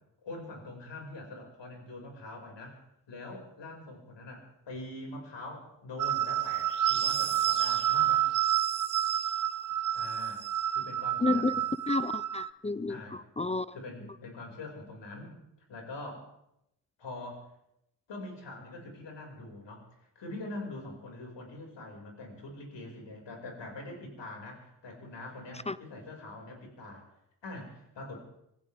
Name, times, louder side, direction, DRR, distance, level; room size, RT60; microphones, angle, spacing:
voice 1, 0.2-2.8 3.1-8.3 9.9-10.4 10.7-11.6 12.9-13.2 13.7-15.4 15.7-16.3 17.0-17.5 18.1-27.1 27.4-28.2, left 2 dB, 60° left, 6.0 m, -44 dB
sound 1, 6.0-12.5, right 11 dB, 40° right, 0.7 m, -29 dB
voice 2, 11.2-11.5 11.9-13.7 25.7-25.8, left 3 dB, 15° left, 0.5 m, -30 dB
25.5 x 15.5 x 3.6 m
hypercardioid pair, 40°, 48 cm